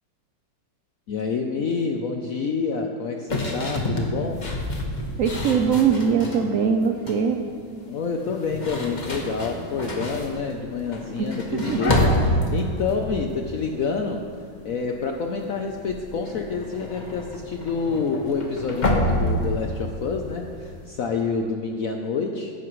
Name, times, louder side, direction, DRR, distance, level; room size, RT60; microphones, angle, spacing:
voice 1, 1.1-4.4 7.9-14.3 14.6-22.5, left 5 dB, 60° left, 3 dB, 0.9 m, -28 dB
sound 1, 3.3-6.5 6.8-7.3 8.2-14.4 14.7-15.1 15.4-20.9, left 1 dB, 30° left, 1.2 m, -28 dB
voice 2, 5.2-7.4 11.2-12.1, right 6 dB, 70° right, 5 dB, 0.7 m, -22 dB
15.5 x 11.0 x 3.1 m, 2.2 s
omnidirectional pair, 2.0 m